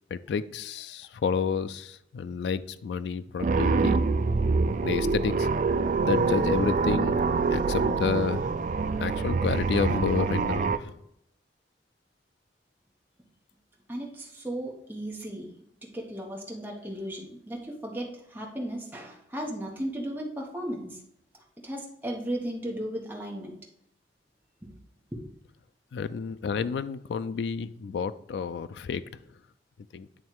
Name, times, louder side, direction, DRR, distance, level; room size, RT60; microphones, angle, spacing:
voice 1, 0.1-4.0 4.8-5.5 6.0-7.2 7.5-8.5 9.0-11.0 25.9-29.0 29.9-30.1, left 6 dB, 80° left, 14 dB, 0.3 m, -30 dB
sound 1, 3.4-10.8, right 4 dB, 45° right, 0.3 m, -25 dB
voice 2, 13.9-15.5 15.8-21.0 21.6-23.5 25.1-25.2, right 1 dB, 10° right, -2 dB, 1.0 m, -35 dB
9.0 x 3.2 x 4.6 m, 0.77 s
head